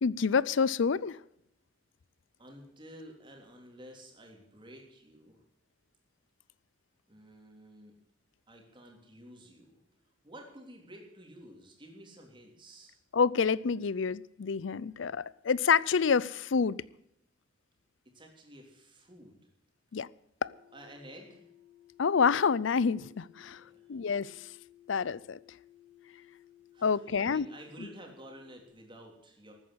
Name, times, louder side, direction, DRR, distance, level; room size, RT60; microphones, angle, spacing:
voice 1, 0.0-1.2 13.1-16.8 19.9-20.1 20.4-20.5 22.0-23.6 23.9-24.4 24.9-25.4 26.8-27.5, left 5 dB, 70° left, 0.5 m, -27 dB
voice 2, 2.4-5.4 7.1-7.9 8.5-13.0 18.0-19.5 20.7-21.5 23.5-24.0 26.2-26.3 26.7-29.5, right 1 dB, 25° right, 3.3 m, -51 dB
sound 1, 20.4-28.7, left 13 dB, 40° left, 3.8 m, -59 dB
13.5 x 9.5 x 8.4 m
head